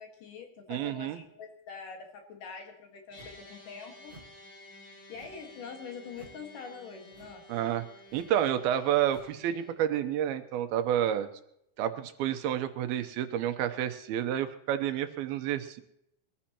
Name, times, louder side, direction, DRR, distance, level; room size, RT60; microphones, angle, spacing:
voice 1, 0.0-4.2 5.1-7.4, left 5 dB, 65° left, 3 dB, 3.2 m, -44 dB
voice 2, 0.7-1.2 7.5-7.8 8.1-11.3 11.8-15.8, right 10 dB, 80° right, 9 dB, 2.8 m, -29 dB
sound 1, 3.1-9.7, left 1 dB, 45° left, 4.8 m, -53 dB
sound 2, 3.1-3.5 4.0-4.4 5.1-5.5 6.1-6.5 7.1-7.5 8.1-8.4 9.0-9.4, right 2 dB, 55° right, 0.6 m, -55 dB
22.5 x 14.5 x 3.0 m, 0.76 s
omnidirectional pair, 4.3 m